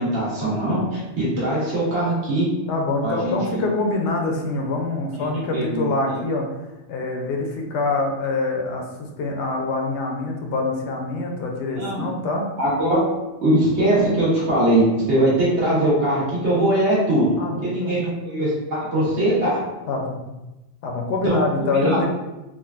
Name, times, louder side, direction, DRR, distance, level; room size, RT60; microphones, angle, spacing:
voice 1, 0.0-2.5 3.0-3.6 5.2-5.3 5.5-6.2 11.8-12.0 12.6-13.1 13.4-17.3 17.6-19.6 21.2-22.0, right 1 dB, 75° right, -9 dB, 1.3 m, -21 dB
voice 2, 2.7-6.4 6.9-8.9 9.2-12.5 17.4-18.0 19.9-20.2 20.8-22.1, left 2 dB, 80° left, 1 dB, 0.9 m, -25 dB
3.7 x 2.2 x 2.3 m, 1.0 s
omnidirectional pair, 1.2 m